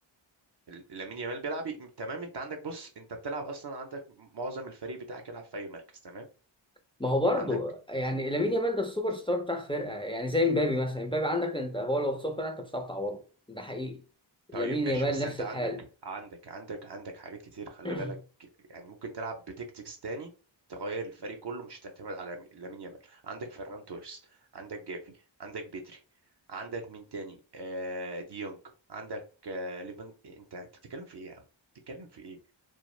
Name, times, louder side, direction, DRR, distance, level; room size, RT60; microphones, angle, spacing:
voice 1, 0.7-6.3 7.4-7.6 14.5-15.7 16.0-18.2 18.7-20.3 20.7-25.1 25.4-26.0 26.5-28.6 28.9-31.4 31.9-32.4, right 2 dB, 60° right, 0.6 m, -39 dB
voice 2, 7.0-13.2 13.5-14.0 14.5-15.8 17.8-18.1, left 1 dB, 10° left, 0.3 m, -29 dB
2.3 x 2.0 x 3.0 m
wide cardioid pair, 55°, 47 cm